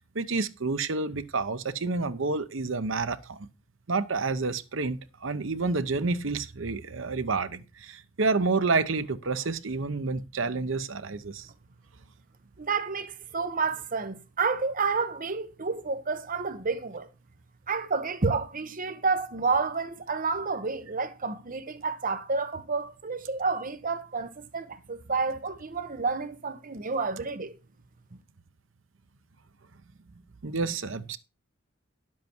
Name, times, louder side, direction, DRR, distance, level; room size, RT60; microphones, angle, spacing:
voice 1, 0.0-3.5 3.9-11.5 30.4-31.2, right 3 dB, 70° right, 0.9 m, -29 dB
voice 2, 12.6-17.1 17.7-27.5, right 4 dB, 45° right, 1.0 m, -30 dB
10.5 x 7.6 x 4.5 m
head